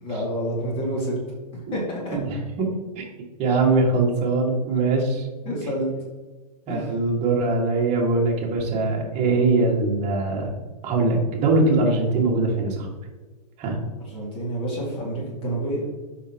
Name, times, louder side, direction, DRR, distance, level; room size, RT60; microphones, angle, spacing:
voice 1, 0.0-1.1 1.7-2.2 5.4-5.9 6.7-6.9 14.1-15.8, right 1 dB, 25° left, -3 dB, 2.2 m, -28 dB
voice 2, 2.1-3.1 3.4-5.3 6.7-10.5 10.8-12.9 13.6-13.8, right 3 dB, 30° right, -1 dB, 1.8 m, -22 dB
7.1 x 5.8 x 2.9 m, 1.3 s
hypercardioid pair, 125°, 21 cm